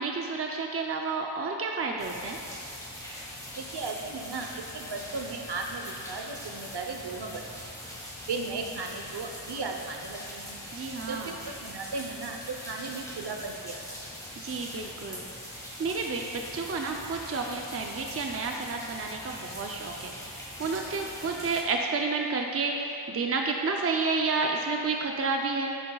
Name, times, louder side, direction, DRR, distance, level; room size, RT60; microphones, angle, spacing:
voice 1, 0.0-2.4 10.7-11.3 14.4-15.2 15.5-25.7, right 4 dB, 30° right, 1 dB, 0.6 m, -30 dB
sound 1, 2.0-21.6, left 1 dB, 5° left, 1.9 m, -42 dB
voice 2, 3.5-7.4 8.3-10.5 11.1-12.4 12.7-13.8, right 3 dB, 55° right, 3 dB, 1.0 m, -36 dB
10.5 x 9.4 x 2.4 m, 2.8 s
cardioid pair, 85°, 46 cm